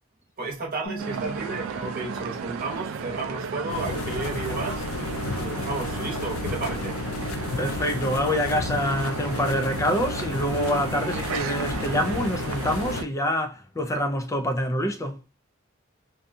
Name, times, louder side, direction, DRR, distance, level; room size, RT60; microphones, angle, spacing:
voice 1, 0.4-4.8 5.3-7.0, right 3 dB, 45° right, 1.0 m, -33 dB
sound 1, 0.8-6.4, right 4 dB, 65° left, 1.5 m, -43 dB
sound 2, 1.0-13.1, right 5 dB, 80° right, 0.4 m, -34 dB
sound 3, 3.7-13.0, left 3 dB, 85° left, 0.3 m, -32 dB
voice 2, 7.6-15.2, equal, 15° left, 0.4 m, -26 dB
2.6 x 2.3 x 2.6 m
head